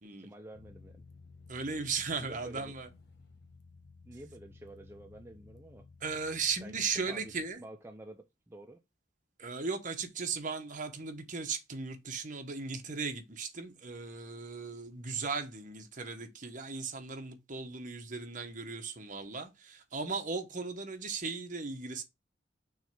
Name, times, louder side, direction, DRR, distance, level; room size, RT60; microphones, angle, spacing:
voice 1, 0.0-1.0 2.2-2.7 4.1-5.9 6.6-7.3 7.6-8.8, right 1 dB, 15° right, 0.5 m, -49 dB
sound 1, 0.5-7.5, left 4 dB, 60° left, 1.2 m, -56 dB
voice 2, 1.5-2.9 6.0-7.6 9.4-22.0, right 4 dB, 45° right, 1.2 m, -37 dB
6.2 x 3.2 x 5.2 m
head